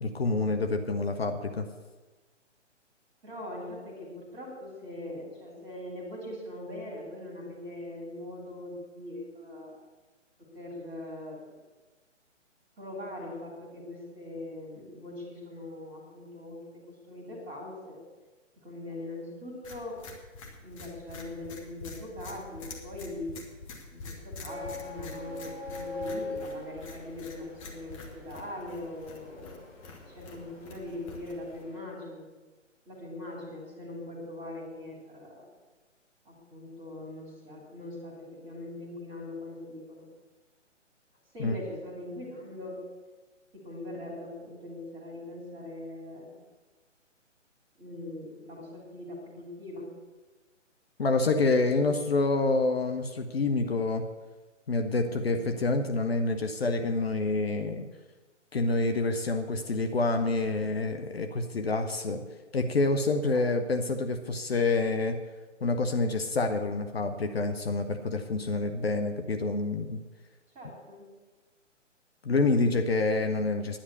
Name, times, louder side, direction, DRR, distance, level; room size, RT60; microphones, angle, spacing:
voice 1, 0.0-1.7 41.4-41.5 51.0-54.0 54.7-57.9 58.5-62.2 62.5-65.2 65.6-70.0 72.2-73.8, left 3 dB, 55° left, 6 dB, 1.0 m, -27 dB
voice 2, 3.2-9.8 10.4-11.4 12.8-18.0 18.6-20.0 20.6-23.3 23.9-29.7 30.1-32.2 32.8-35.5 36.2-40.1 41.3-42.8 43.5-46.3 47.8-49.9 55.1-55.4 63.3-63.5 70.5-71.0, left 1 dB, 15° right, -2 dB, 3.1 m, -41 dB
sound 1, 19.6-31.6, left 3 dB, 25° left, 1.8 m, -46 dB
sound 2, 24.5-31.8, left 2 dB, 70° left, 3.8 m, -42 dB
10.5 x 9.9 x 6.8 m, 1.2 s
figure-of-eight pair, 135°, 37 cm